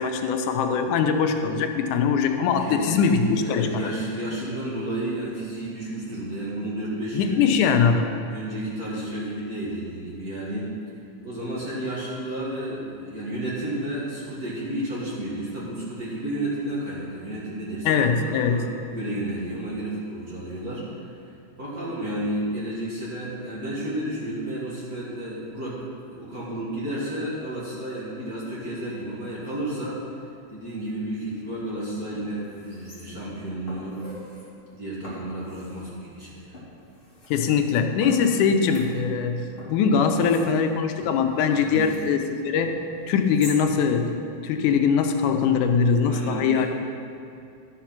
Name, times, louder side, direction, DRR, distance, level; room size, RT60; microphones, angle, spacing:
voice 1, 0.0-3.9 7.1-8.1 17.9-18.6 37.3-39.4 39.7-42.7 43.1-44.1 44.4-46.7, left 6 dB, 90° left, 6 dB, 2.2 m, -22 dB
voice 2, 2.6-7.9 8.3-10.7 11.2-18.7 18.9-21.0 21.6-30.0 30.5-34.1 34.7-36.6 41.5-41.9 46.0-46.7, right 1 dB, 35° right, -7 dB, 1.9 m, -32 dB
sound 1, 31.7-31.8 32.1-33.3 33.7-34.5 35.0-35.9 36.5-37.3 38.0-39.3 39.6-42.1 42.6-43.6 44.0-44.1, left 1 dB, 20° left, 2.4 m, -44 dB
11.5 x 6.2 x 5.9 m, 2.6 s
omnidirectional pair, 3.5 m